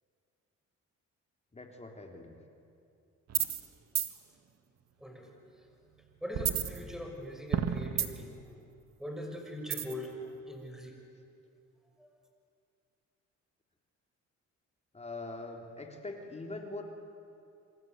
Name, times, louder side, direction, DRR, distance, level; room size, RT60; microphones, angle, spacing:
voice 1, 1.5-2.4 14.9-16.8, left 2 dB, 20° left, 2 dB, 3.6 m, -43 dB
sound 1, 3.3-3.7 4.0-4.1 6.3-7.2 7.5-8.4 9.7-10.1, right 9 dB, 60° right, 1.9 m, -31 dB
voice 2, 5.0-5.7 6.2-8.4 9.0-10.2 10.5-11.0 12.0-12.1, left 1 dB, ahead, 2 dB, 6.3 m, -42 dB
27.5 x 26.0 x 8.2 m, 2.6 s
cardioid pair, 90°, 30 cm